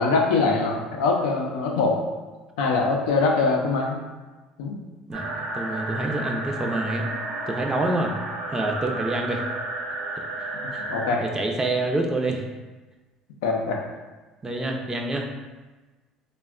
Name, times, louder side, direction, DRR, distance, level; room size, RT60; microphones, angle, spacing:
voice 1, 0.0-2.0 2.6-4.0 4.6-4.8 10.9-11.2 13.4-13.8, left 3 dB, 80° left, 0 dB, 0.4 m, -23 dB
voice 2, 5.1-7.0 7.5-8.1 8.5-9.4 10.7-10.8 11.2-12.4 14.4-15.3, right 2 dB, 25° right, 2 dB, 0.5 m, -27 dB
sound 1, 5.1-11.1, right 2 dB, 80° right, 0.5 m, -32 dB
3.3 x 2.1 x 2.3 m, 1.2 s
hypercardioid pair, 70°, 2 cm